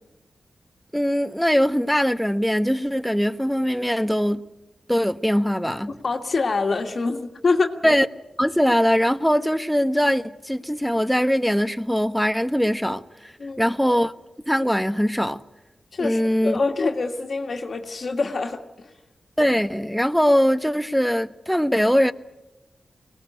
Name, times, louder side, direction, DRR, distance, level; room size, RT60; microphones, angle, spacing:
voice 1, 0.9-4.4 4.9-5.9 7.8-8.1 8.4-14.1 14.5-15.4 16.0-16.6 19.4-22.1, equal, ahead, 1.1 m, -21 dB
voice 2, 6.0-7.7 13.4-13.7 15.9-18.9, left 3 dB, 60° left, 1.7 m, -25 dB
22.5 x 19.0 x 9.8 m
cardioid pair, 50°, 0 cm